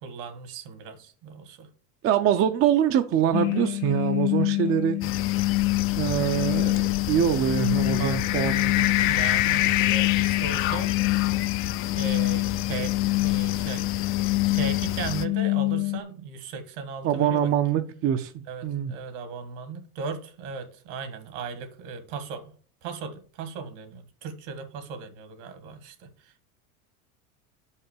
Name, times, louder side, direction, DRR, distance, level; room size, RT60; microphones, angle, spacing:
voice 1, 0.0-1.7 3.4-3.5 5.0-5.1 7.9-8.2 9.1-11.0 11.9-13.9 14.5-17.5 18.5-22.5 22.8-26.4, right 5 dB, 70° right, 1.8 m, -37 dB
voice 2, 2.0-5.2 6.0-6.8 7.1-8.9 17.0-18.9, right 9 dB, 35° right, 0.5 m, -24 dB
sound 1, 3.3-16.0, left 18 dB, 70° left, 0.8 m, -25 dB
sound 2, 5.0-15.3, left 11 dB, 35° left, 0.4 m, -32 dB
5.6 x 5.2 x 6.6 m
supercardioid pair, 120°, 40 cm